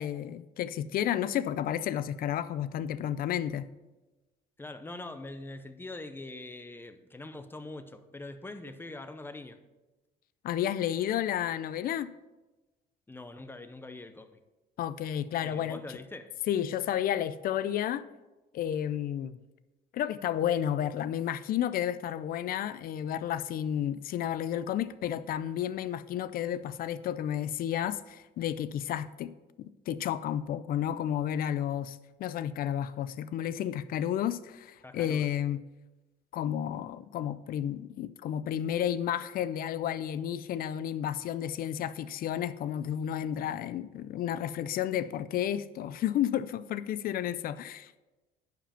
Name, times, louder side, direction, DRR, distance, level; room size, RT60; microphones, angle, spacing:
voice 1, 0.0-3.7 10.4-12.1 14.8-15.8 16.5-18.1 18.5-19.4 19.9-29.3 29.9-35.6 36.3-48.0, left 10 dB, 60° left, 15 dB, 0.4 m, -31 dB
voice 2, 4.6-9.6 13.1-14.4 15.4-16.3 34.8-35.3, left 2 dB, 15° left, 10 dB, 0.7 m, -43 dB
10.5 x 5.1 x 5.7 m, 1.1 s
cardioid pair, 110°, 17 cm